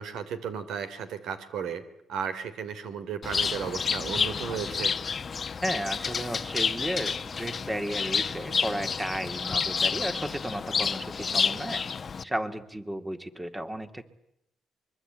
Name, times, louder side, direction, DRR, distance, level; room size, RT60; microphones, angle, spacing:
voice 1, 0.0-1.8 2.1-4.9, right 7 dB, 80° right, 11 dB, 2.9 m, -34 dB
Bird, 3.2-12.2, left 5 dB, 40° left, 1.0 m, -30 dB
voice 2, 5.6-11.8 12.2-14.0, right 1 dB, 10° right, 9 dB, 2.2 m, -33 dB
24.0 x 23.0 x 9.2 m, 0.80 s
cardioid pair, 90°, 0 cm